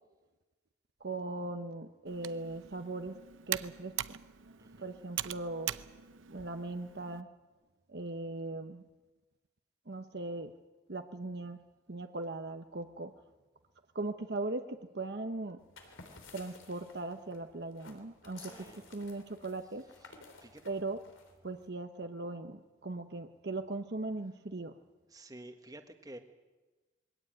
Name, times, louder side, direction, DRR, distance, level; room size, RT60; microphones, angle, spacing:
voice 1, 1.0-3.2 3.5-4.2 4.8-5.8 6.3-7.3 7.9-8.8 9.9-10.5 10.9-11.6 11.9-13.1 13.9-15.6 16.3-19.9 20.6-21.0 21.4-24.8, right 2 dB, 55° right, 7 dB, 0.9 m, -39 dB
Computer keyboard, 2.1-7.2, right 12 dB, 85° right, 0.6 m, -42 dB
voice 2, 4.6-4.9 18.4-18.8 20.0-20.1 20.4-20.6 25.1-26.2, right 1 dB, 20° right, 6 dB, 1.5 m, -51 dB
sound 1, 15.6-21.7, left 3 dB, 90° left, 3.6 m, -55 dB
22.0 x 17.0 x 9.0 m, 1.2 s
head